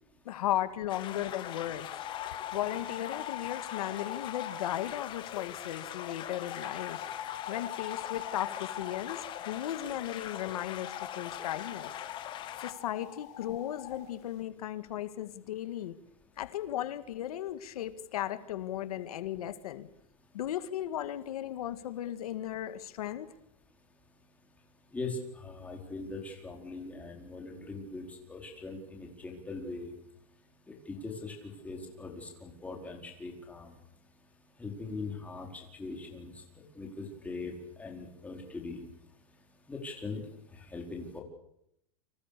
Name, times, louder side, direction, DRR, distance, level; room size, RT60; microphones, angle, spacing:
voice 1, 0.3-1.9 2.5-7.0 7.5-11.9 12.6-16.0 16.4-19.9 20.3-23.3, left 12 dB, 85° left, 11 dB, 2.0 m, -36 dB
sound 1, 0.9-12.7, left 11 dB, 25° left, 1.7 m, -42 dB
sound 2, 1.8-5.7 6.4-9.7 10.8-14.0, left 10 dB, 45° left, 5.9 m, -43 dB
voice 2, 24.9-29.9 30.9-31.3 31.6-33.7 34.6-36.3 36.8-37.5 37.8-38.8 39.7-40.2 40.5-41.2, left 3 dB, 10° left, 1 dB, 4.6 m, -41 dB
29.5 x 25.5 x 6.9 m, 0.77 s
supercardioid pair, 165°, 19 cm